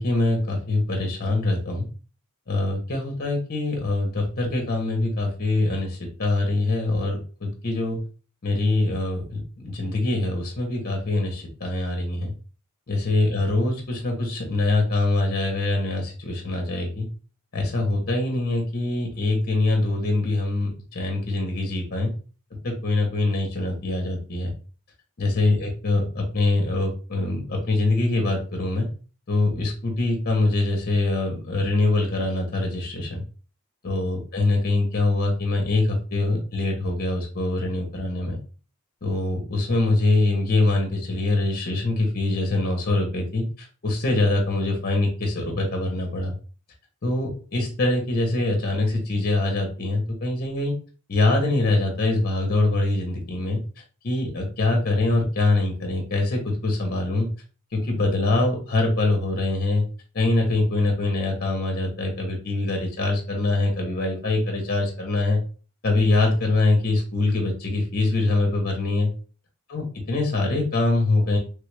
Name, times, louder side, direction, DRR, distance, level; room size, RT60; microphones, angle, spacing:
voice 1, 0.0-1.9 2.5-8.0 8.4-12.3 12.9-17.1 17.5-22.1 22.6-24.5 25.2-28.9 29.3-33.2 33.8-38.4 39.0-46.3 47.0-50.7 51.1-53.6 54.0-57.3 57.7-59.8 60.1-65.4 65.8-69.1 69.7-71.4, left 2 dB, 45° left, 2 dB, 0.7 m, -24 dB
3.3 x 2.3 x 3.1 m, 0.37 s
head